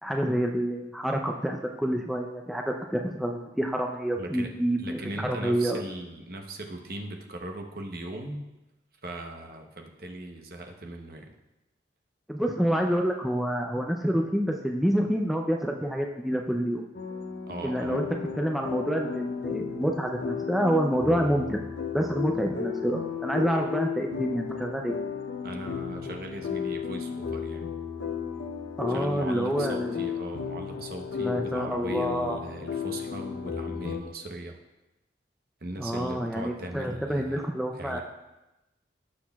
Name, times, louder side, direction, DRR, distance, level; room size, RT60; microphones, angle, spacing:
voice 1, 0.0-5.8 12.3-16.8 17.6-18.1 18.4-21.6 21.9-25.0 28.8-29.9 31.2-32.4 35.8-38.0, equal, ahead, 1 dB, 0.4 m, -28 dB
voice 2, 4.1-4.5 4.8-8.4 9.0-11.3 17.5-18.1 25.4-27.7 28.9-34.6 35.6-37.4 37.8-38.0, right 1 dB, 55° right, 3 dB, 0.9 m, -39 dB
sound 1, 16.9-34.0, left 6 dB, 85° left, 0.8 m, -34 dB
17.0 x 6.4 x 2.4 m, 1.0 s
head